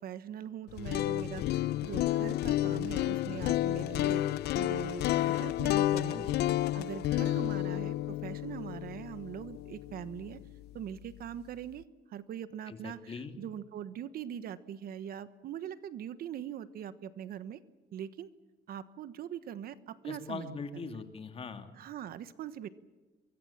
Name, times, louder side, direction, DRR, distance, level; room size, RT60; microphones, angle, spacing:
voice 1, 0.0-6.3 6.7-10.4 10.7-17.6 17.9-18.3 18.7-20.5 20.8-21.0 21.8-22.7, right 9 dB, 60° right, 14 dB, 1.2 m, -42 dB
sound 1, 0.7-10.7, left 14 dB, 75° left, 0.7 m, -31 dB
voice 2, 6.1-6.5 12.7-13.4 20.0-21.7, left 4 dB, 35° left, 7 dB, 2.6 m, -41 dB
24.0 x 22.5 x 7.3 m, 1.2 s
cardioid pair, 110°, 17 cm